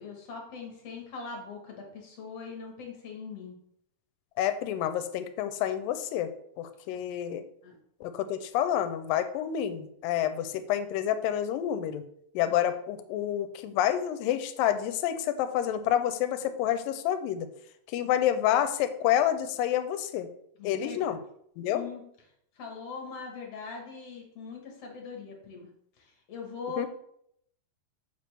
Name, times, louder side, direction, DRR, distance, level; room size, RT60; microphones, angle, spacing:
voice 1, 0.0-3.6 7.6-7.7 12.5-12.6 18.0-18.1 20.6-21.2 21.7-22.0 22.6-25.7 26.3-26.9, left 4 dB, 60° left, 0 dB, 1.9 m, -41 dB
voice 2, 4.4-6.3 6.6-7.4 8.0-12.0 12.4-17.5 17.9-20.3 20.6-21.2 21.6-21.8 26.8-26.9, left 11 dB, 85° left, 11 dB, 2.3 m, -28 dB
6.8 x 6.8 x 3.3 m, 0.71 s
omnidirectional pair, 4.0 m